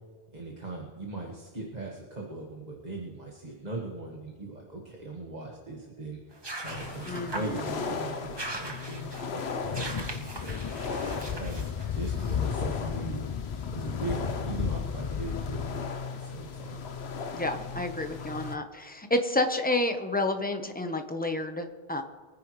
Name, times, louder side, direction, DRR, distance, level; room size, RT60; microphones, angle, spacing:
voice 1, 0.3-10.5 11.0-13.2 13.7-16.8, right 2 dB, 45° right, -1 dB, 1.6 m, -40 dB
sound 1, 6.3-12.4, right 2 dB, 25° right, 1.0 m, -41 dB
sound 2, 6.6-18.6, left 5 dB, 85° left, 1.1 m, -37 dB
voice 2, 7.1-7.6 17.3-22.0, left 2 dB, 10° left, 6 dB, 0.9 m, -30 dB
sound 3, 9.6-15.8, left 7 dB, 45° left, 0.4 m, -34 dB
24.0 x 10.0 x 3.2 m, 1.5 s
omnidirectional pair, 1.0 m